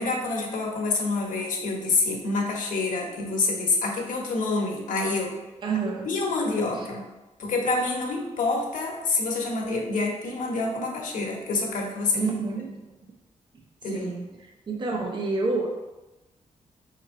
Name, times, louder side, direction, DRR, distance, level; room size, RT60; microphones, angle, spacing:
voice 1, 0.0-5.3 6.0-7.0 7.4-12.3 13.8-14.1, left 3 dB, 80° left, -1 dB, 0.9 m, -27 dB
voice 2, 5.6-6.1 6.7-6.9 12.2-12.7 13.9-14.3 14.7-15.7, right 4 dB, 35° right, -1 dB, 0.6 m, -28 dB
3.5 x 3.2 x 4.7 m, 1.0 s
wide cardioid pair, 135°, 13 cm